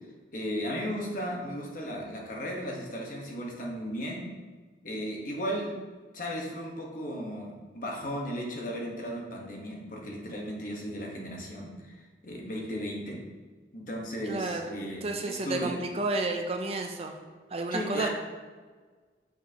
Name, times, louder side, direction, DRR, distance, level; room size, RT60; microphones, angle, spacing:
voice 1, 0.3-4.3 4.8-5.7 6.1-13.2 13.7-15.7 17.7-18.1, equal, 45° left, -1 dB, 1.1 m, -35 dB
voice 2, 14.3-14.7 15.0-17.1 17.5-18.1, right 2 dB, 30° right, 4 dB, 0.4 m, -31 dB
6.3 x 5.8 x 2.8 m, 1.5 s
head